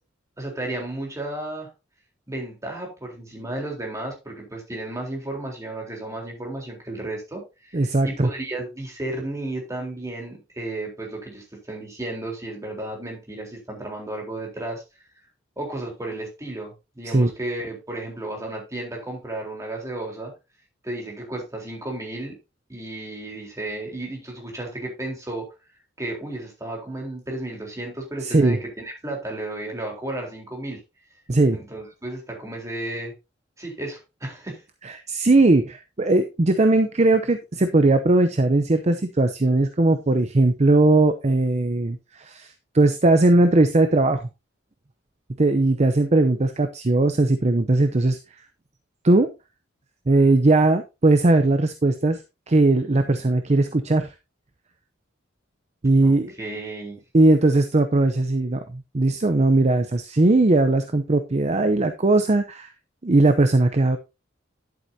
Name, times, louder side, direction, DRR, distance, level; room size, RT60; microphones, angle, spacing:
voice 1, 0.4-1.7 2.3-14.8 15.6-20.3 20.8-22.4 22.7-25.5 26.0-30.8 31.5-33.1 33.6-34.6 56.0-57.0, right 2 dB, 15° right, 0 dB, 3.7 m, -33 dB
voice 2, 7.7-8.3 17.1-17.3 28.2-28.6 31.3-31.6 34.8-44.3 45.4-48.2 49.0-49.3 50.1-52.2 52.5-54.1 55.8-56.4 57.1-62.7 63.0-64.0, right 2 dB, 35° right, 8 dB, 0.7 m, -19 dB
11.0 x 7.9 x 2.7 m, 0.26 s
head